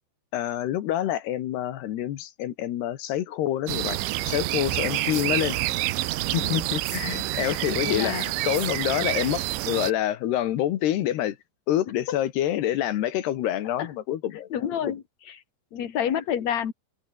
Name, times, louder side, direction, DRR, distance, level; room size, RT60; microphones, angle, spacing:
voice 1, 0.3-5.6 6.3-11.4 11.7-14.5, left 12 dB, 65° left, 3.3 m, -27 dB
sound 1, 3.7-9.9, right 17 dB, 80° right, 3.3 m, -28 dB
voice 2, 7.7-8.3 12.1-12.2 13.8-13.9 14.5-15.4 15.7-16.7, left 9 dB, 45° left, 2.8 m, -29 dB
omnidirectional pair, 5.5 m